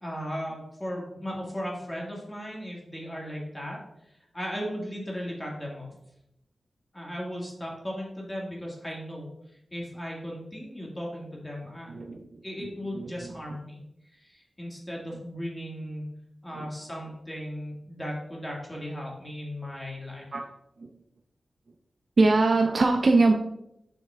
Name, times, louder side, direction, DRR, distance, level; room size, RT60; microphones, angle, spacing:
voice 1, 0.0-3.8 4.3-5.9 6.9-9.3 9.7-11.9 12.4-13.8 14.2-16.1 16.4-20.3, equal, 10° left, -3 dB, 1.9 m, -36 dB
voice 2, 11.9-13.3 16.5-16.7 20.3-20.5 20.8-20.9 22.2-23.4, right 3 dB, 50° right, 3 dB, 0.4 m, -23 dB
7.5 x 5.3 x 2.4 m, 0.80 s
wide cardioid pair, 100°, 0 cm